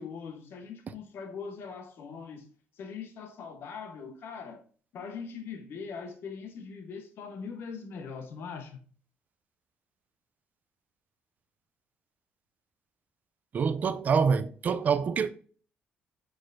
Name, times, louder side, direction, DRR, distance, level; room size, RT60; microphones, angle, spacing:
voice 1, 0.0-2.5 2.8-4.6 4.9-8.8, left 5 dB, 65° left, 0.7 m, -41 dB
voice 2, 13.5-15.3, right 6 dB, 40° right, 0.4 m, -26 dB
6.1 x 3.1 x 2.5 m
cardioid pair, 115°, 4 cm